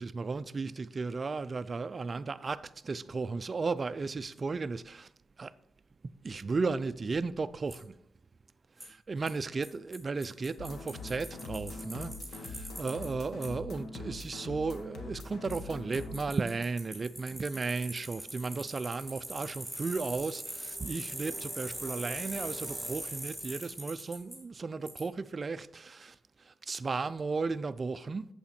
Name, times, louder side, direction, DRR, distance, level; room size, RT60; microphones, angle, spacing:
voice 1, 0.0-5.1 5.4-5.5 6.2-8.0 9.1-28.3, right 4 dB, 35° right, 0.4 m, -35 dB
Bicycle, 7.7-7.8 8.8-8.9 9.3-9.4 9.6-9.7 9.9-10.0 10.2-13.1 13.4-13.5 15.5-15.6 15.9-24.4 24.9-25.0, right 1 dB, ahead, 3.0 m, -41 dB
sound 1, 10.6-16.2, left 3 dB, 75° left, 1.1 m, -43 dB
8.6 x 7.1 x 4.3 m
wide cardioid pair, 130°, 0 cm